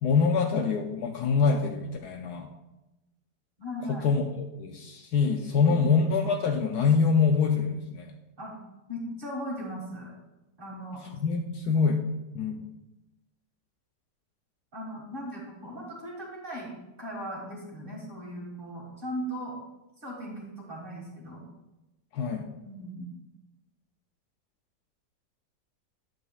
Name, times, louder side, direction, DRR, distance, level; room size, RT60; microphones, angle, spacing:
voice 1, 0.0-2.5 3.9-8.1 11.2-12.0 12.3-12.7 22.1-22.5, left 5 dB, 70° left, 3 dB, 1.0 m, -25 dB
voice 2, 3.6-4.1 5.7-5.8 8.4-8.6 8.9-10.1 10.6-11.0 14.7-16.7 17.0-19.6 20.0-21.4 22.6-23.1, equal, 30° right, -2 dB, 1.9 m, -38 dB
9.4 x 7.5 x 2.3 m, 0.99 s
omnidirectional pair, 1.9 m